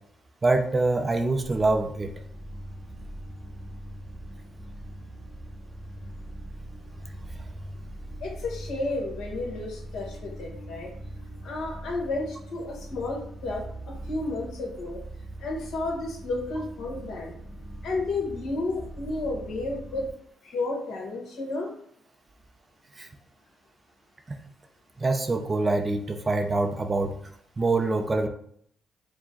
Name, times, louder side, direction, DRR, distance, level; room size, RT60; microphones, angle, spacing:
voice 1, 0.4-2.1 23.0-23.1 24.3-24.4 25.0-27.2 27.6-28.3, right 2 dB, 30° right, 6 dB, 0.5 m, -25 dB
sound 1, 1.4-20.1, right 1 dB, 10° right, 0.9 m, -41 dB
voice 2, 8.2-10.9 11.4-13.6 14.1-15.0 15.4-17.3 17.8-20.0 20.4-21.7, left 2 dB, 75° left, -1 dB, 1.5 m, -32 dB
4.8 x 2.2 x 3.8 m, 0.65 s
cardioid pair, 90°, 0 cm